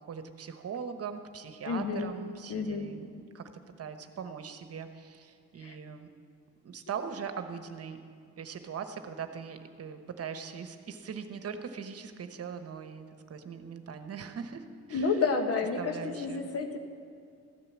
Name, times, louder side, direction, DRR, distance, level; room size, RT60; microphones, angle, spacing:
voice 1, 0.0-3.5 3.8-6.1 6.6-8.0 8.4-15.2 15.8-16.5, right 6 dB, 50° right, 8 dB, 1.2 m, -40 dB
voice 2, 1.6-2.1 2.5-2.9 5.6-5.8 14.9-16.8, left 4 dB, 50° left, 6 dB, 1.6 m, -30 dB
15.0 x 9.7 x 7.4 m, 2.4 s
cardioid pair, 90°, 30 cm